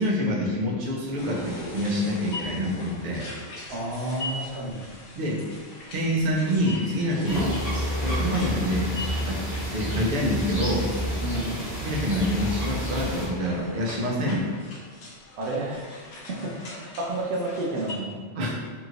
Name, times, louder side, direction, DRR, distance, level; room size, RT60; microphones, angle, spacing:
voice 1, 0.0-3.2 5.1-5.4 5.9-7.4 8.0-8.9 9.2-9.4 9.7-10.9 11.8-14.5 18.4-18.5, equal, 50° right, -3 dB, 0.7 m, -26 dB
sound 1, 1.0-4.6 6.9-10.0 12.2-15.0, left 2 dB, 20° left, 0.6 m, -42 dB
sound 2, 1.2-18.0, left 2 dB, 85° left, 0.9 m, -42 dB
voice 2, 3.7-4.9 7.2-7.6 11.2-11.6 14.2-14.4 15.4-15.9 16.3-18.2, right 1 dB, 85° right, -2 dB, 0.9 m, -31 dB
sound 3, 7.3-13.3, equal, ahead, 0.9 m, -30 dB
2.9 x 2.8 x 2.4 m, 1.6 s
omnidirectional pair, 1.1 m